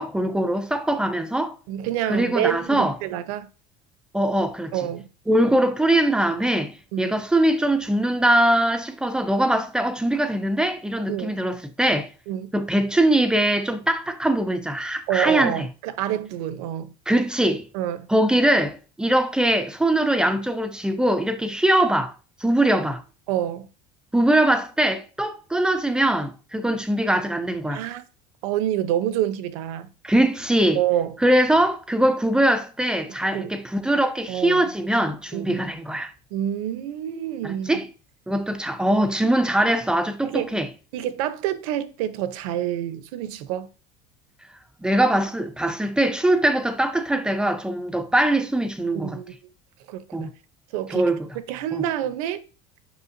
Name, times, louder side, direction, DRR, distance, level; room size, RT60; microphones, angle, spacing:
voice 1, 0.0-1.6 2.1-2.9 4.1-4.7 5.3-12.1 12.5-15.7 17.1-17.7 18.1-22.1 22.4-23.0 24.1-27.8 30.0-30.8 31.2-36.1 37.4-37.9 38.3-40.7 44.8-49.2 50.1-50.3 50.9-51.3 51.7-51.8, right 1 dB, 5° right, 0.3 m, -22 dB
voice 2, 1.7-3.5 4.7-5.1 6.9-7.2 11.1-11.4 12.3-12.5 15.1-16.9 17.7-18.1 23.3-23.7 27.7-28.0 28.4-29.9 30.7-31.2 33.3-33.5 34.3-34.7 35.3-35.7 36.3-37.8 40.2-40.6 40.9-43.7 48.9-49.4 49.9-50.3 50.7-51.1 51.5-52.4, right 11 dB, 80° right, 0.8 m, -27 dB
8.1 x 5.6 x 2.6 m
cardioid pair, 175°, 18 cm